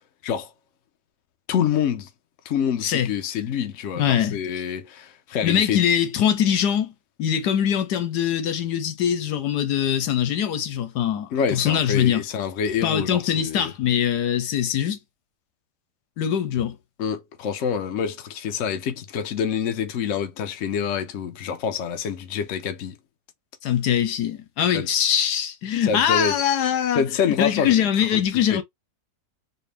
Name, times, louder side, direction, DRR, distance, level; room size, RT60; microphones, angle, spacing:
voice 1, 1.5-2.1 2.4-5.8 11.3-13.7 17.0-23.0 24.7-24.9 25.8-26.4 26.9-28.2 28.5-28.6, left 7 dB, 60° left, 1.0 m, -26 dB
voice 2, 4.0-4.4 5.4-6.9 7.2-12.2 12.8-15.0 16.2-16.8 23.6-27.1 27.4-28.6, left 9 dB, 85° left, 1.4 m, -22 dB
4.4 x 2.2 x 3.4 m
omnidirectional pair, 1.7 m